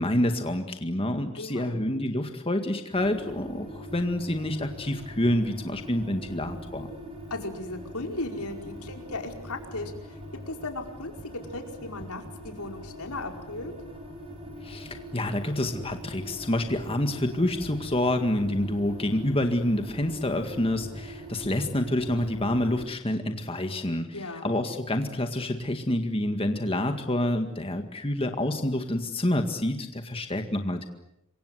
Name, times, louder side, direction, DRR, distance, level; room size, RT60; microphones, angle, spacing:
voice 1, 0.0-6.9 14.6-30.9, left 1 dB, 25° left, 6 dB, 1.9 m, -28 dB
voice 2, 1.3-1.8 7.3-10.2 10.5-13.7 24.1-24.5, left 2 dB, 85° left, 4 dB, 5.0 m, -36 dB
sound 1, 2.9-22.9, equal, 25° right, 6.9 m, -42 dB
28.0 x 25.0 x 8.1 m, 0.80 s
head